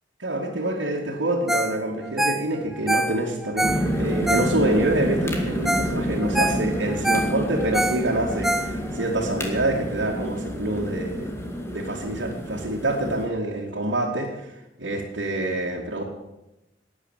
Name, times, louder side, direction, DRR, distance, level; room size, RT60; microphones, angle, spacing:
voice 1, 0.2-11.4 11.7-14.5 14.8-16.0, right 1 dB, 90° right, -6 dB, 2.3 m, -26 dB
Ringtone, 1.5-1.8 2.0-4.9 5.4-5.5 5.7-5.9 6.2-9.1 9.5-9.6, right 1 dB, ahead, 0.6 m, -26 dB
sound 1, 3.6-13.3, equal, 15° left, 2.3 m, -29 dB
12.5 x 9.6 x 9.1 m, 0.95 s
head